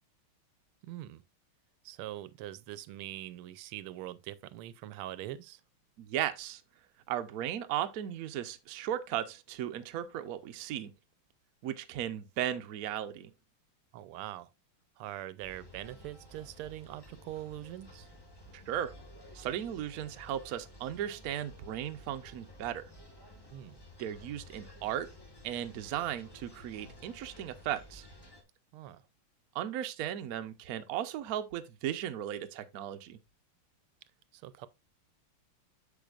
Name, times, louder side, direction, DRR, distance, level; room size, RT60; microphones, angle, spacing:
voice 1, 0.8-1.2 1.8-5.6 13.9-14.5 15.0-18.1 23.5-23.8 28.7-29.0 34.3-34.7, right 14 dB, 90° right, 1.5 m, -43 dB
voice 2, 6.0-6.6 7.1-10.9 11.6-13.3 18.5-18.9 19.3-22.8 24.0-25.1 25.4-28.1 29.5-33.2, right 11 dB, 70° right, 0.9 m, -36 dB
sound 1, 15.4-28.4, left 1 dB, 25° left, 0.6 m, -53 dB
8.3 x 6.2 x 2.4 m
omnidirectional pair, 2.3 m